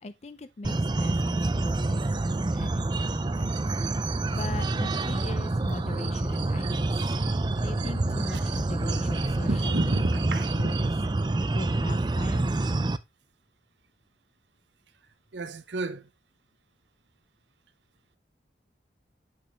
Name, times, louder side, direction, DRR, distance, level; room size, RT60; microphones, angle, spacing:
voice 1, 0.0-3.5 4.3-7.0 7.6-10.3 10.6-11.0 11.5-12.5, left 3 dB, 40° left, 0.5 m, -41 dB
sound 1, 0.6-13.0, right 2 dB, 25° right, 0.4 m, -27 dB
sound 2, 3.5-11.0, right 2 dB, 65° right, 1.1 m, -35 dB
voice 2, 15.3-16.1, right 3 dB, 85° right, 0.8 m, -35 dB
8.5 x 5.8 x 3.1 m
head